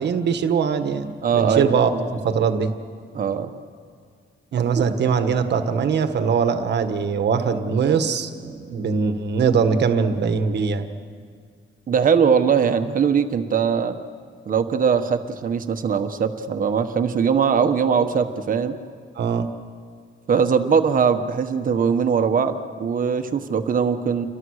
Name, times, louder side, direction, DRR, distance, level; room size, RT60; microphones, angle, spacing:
voice 1, 0.0-1.9 2.2-2.7 4.5-10.9 19.2-19.5, right 6 dB, 60° right, 8 dB, 1.5 m, -21 dB
voice 2, 1.2-2.1 3.1-3.5 4.8-4.9 11.9-13.9 14.5-18.8 20.3-24.3, right 6 dB, 45° right, 8 dB, 1.3 m, -21 dB
28.5 x 23.0 x 6.5 m, 2.1 s
wide cardioid pair, 180°, 20 cm